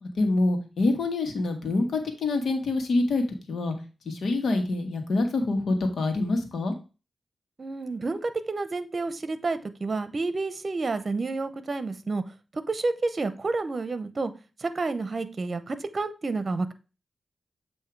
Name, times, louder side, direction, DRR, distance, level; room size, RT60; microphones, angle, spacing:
voice 1, 0.0-3.7 4.0-6.7, left 2 dB, 80° left, 5 dB, 1.3 m, -26 dB
voice 2, 7.6-12.2 12.5-14.3 14.6-16.7, right 3 dB, 50° right, 12 dB, 0.8 m, -30 dB
7.8 x 2.8 x 4.6 m, 0.32 s
cardioid pair, 55°, 0 cm